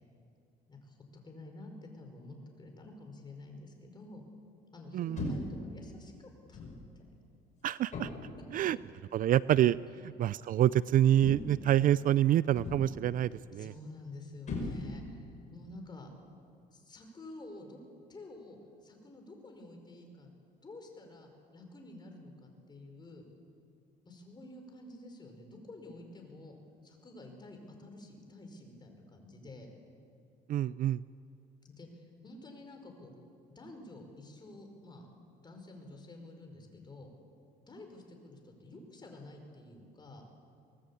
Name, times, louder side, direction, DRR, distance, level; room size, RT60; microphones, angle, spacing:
voice 1, 0.7-4.3 4.7-6.6 7.0-7.1 10.0-10.1 13.3-16.1 16.7-17.8 18.1-20.3 20.6-23.3 24.1-26.6 26.8-29.7 31.6-33.1 33.6-35.1 35.4-37.1 37.7-40.3, left 2 dB, 25° left, 3 dB, 5.1 m, -50 dB
voice 2, 4.9-5.4 7.6-8.1 8.5-8.8 9.1-9.8 10.0-13.7 30.5-31.0, right 12 dB, 55° right, 18 dB, 0.4 m, -27 dB
sound 1, 5.2-5.6 6.5-6.9 7.9-8.4 9.5-9.7 11.2-11.7 12.6-13.1 14.5-15.2, left 3 dB, 45° left, 5.3 m, -38 dB
23.5 x 19.0 x 8.5 m, 2.4 s
cardioid pair, 110°, 17 cm